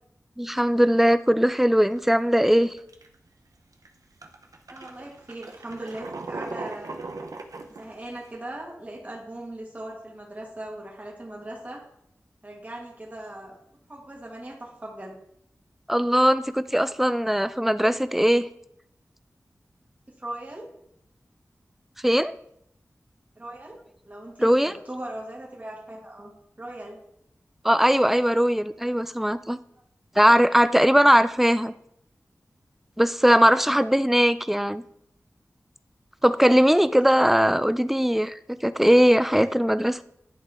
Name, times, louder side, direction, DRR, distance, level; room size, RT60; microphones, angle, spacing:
voice 1, 0.4-2.7 15.9-18.5 22.0-22.3 24.4-24.7 27.6-29.6 30.2-31.7 33.0-34.8 36.2-40.0, equal, 5° right, 13 dB, 0.3 m, -20 dB
sound 1, 2.0-2.2 2.6-3.1 3.7-3.9 4.2-8.3, right 3 dB, 90° right, 0.7 m, -38 dB
voice 2, 4.7-7.0 7.7-11.8 12.4-13.6 13.9-15.1 20.2-20.7 23.3-23.8 24.0-27.0, right 1 dB, 25° right, -2 dB, 1.7 m, -39 dB
11.0 x 3.7 x 3.4 m, 0.75 s
wide cardioid pair, 65°, 6 cm